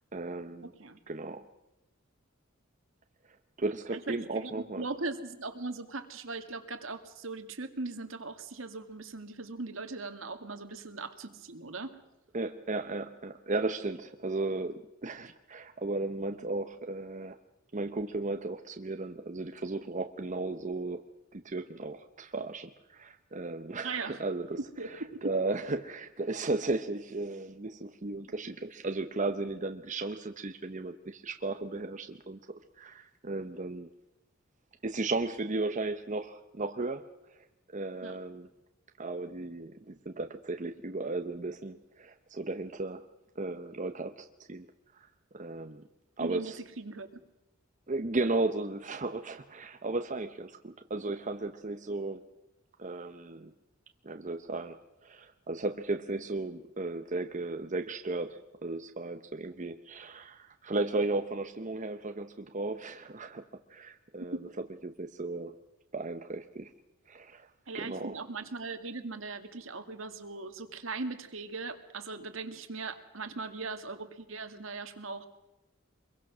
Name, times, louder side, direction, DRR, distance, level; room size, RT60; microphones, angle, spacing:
voice 1, 0.1-0.7 1.1-1.4 3.6-4.9 12.3-17.4 17.7-21.0 21.3-32.4 32.8-33.9 34.8-37.4 37.7-38.5 39.0-43.0 43.4-44.7 44.9-45.1 45.3-45.8 46.2-46.6 47.9-52.2 52.8-53.5 54.0-54.8 55.0-63.4 63.7-65.5 65.9-66.7 67.1-67.5 67.7-68.1, right 2 dB, 40° right, 6 dB, 0.9 m, -35 dB
voice 2, 0.6-1.0 3.9-12.0 23.8-24.2 24.8-25.3 38.0-38.2 46.2-47.1 64.2-64.5 67.7-75.3, right 3 dB, 70° right, 7 dB, 2.0 m, -39 dB
25.0 x 22.5 x 6.2 m, 0.96 s
head